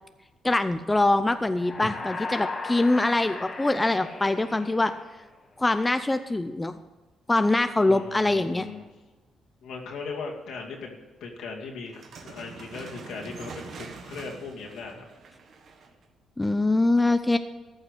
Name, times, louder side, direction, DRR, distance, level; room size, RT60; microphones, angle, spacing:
voice 1, 0.4-4.9 5.6-6.8 7.3-8.7 16.4-17.4, left 2 dB, 15° left, 10 dB, 0.5 m, -23 dB
sound 1, 1.5-5.4, left 3 dB, 35° left, 1.7 m, -37 dB
voice 2, 7.7-8.9 9.6-15.0, left 4 dB, 80° left, 0 dB, 2.4 m, -38 dB
sound 2, 11.9-16.0, right 4 dB, 60° right, 1.5 m, -44 dB
14.0 x 5.7 x 8.2 m, 1.2 s
cardioid pair, 90°, 0 cm